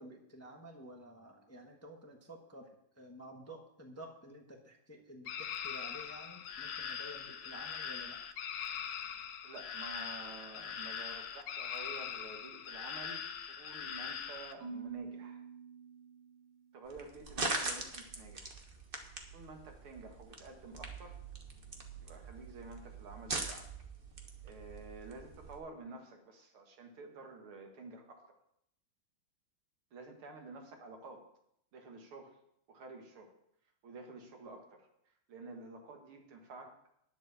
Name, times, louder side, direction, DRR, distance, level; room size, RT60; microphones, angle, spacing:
voice 1, 0.0-2.7 2.9-8.2, equal, 10° left, 2 dB, 0.9 m, -51 dB
sound 1, 5.3-14.5, left 8 dB, 60° left, 1.1 m, -42 dB
voice 2, 9.4-15.4 16.7-18.6 19.3-21.2 22.0-23.7 24.4-28.2 29.9-31.2 31.7-32.4 32.7-33.3 33.8-34.9 35.3-36.8, right 3 dB, 85° right, 3 dB, 2.6 m, -50 dB
Marimba xylophone / Wood, 14.6-16.8, right 5 dB, 70° right, 2.7 m, -47 dB
sound 2, 16.9-25.6, right 3 dB, 30° right, 1.2 m, -42 dB
10.5 x 7.7 x 6.9 m, 0.75 s
omnidirectional pair, 2.3 m